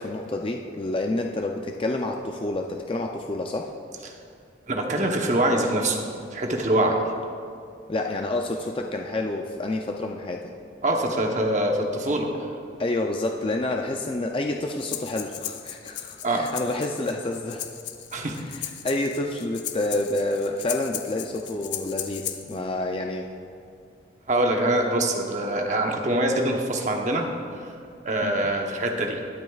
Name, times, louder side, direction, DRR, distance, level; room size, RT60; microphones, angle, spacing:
voice 1, 0.0-3.7 7.9-10.5 12.8-17.7 18.5-23.3 28.2-28.5, left 2 dB, 30° left, 2 dB, 0.4 m, -28 dB
voice 2, 4.7-6.0 6.3-7.0 10.8-12.3 16.2-16.4 18.1-18.4 24.3-27.3 27.5-27.7 28.0-29.2, right 1 dB, 40° right, 2 dB, 0.9 m, -24 dB
Breathing, 14.8-22.6, left 10 dB, 80° left, 0.6 m, -36 dB
21.0 x 8.1 x 2.4 m, 2.4 s
head